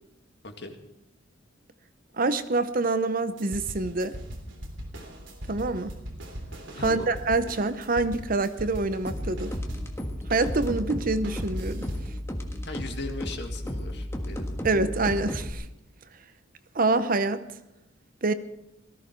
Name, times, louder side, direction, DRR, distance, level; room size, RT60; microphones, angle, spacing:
voice 1, 0.4-0.8 6.8-7.1 12.6-14.8, left 2 dB, 60° left, 5 dB, 2.0 m, -38 dB
voice 2, 2.2-4.2 5.5-5.9 6.8-9.5 10.3-11.9 14.6-15.6 16.7-17.4 18.2-18.3, right 3 dB, 45° right, 12 dB, 0.8 m, -26 dB
sound 1, 3.4-10.0 10.3-12.1, equal, 65° right, 3.3 m, -39 dB
sound 2, 9.0-15.5, equal, 15° left, 1.6 m, -34 dB
18.0 x 14.5 x 4.6 m, 0.93 s
head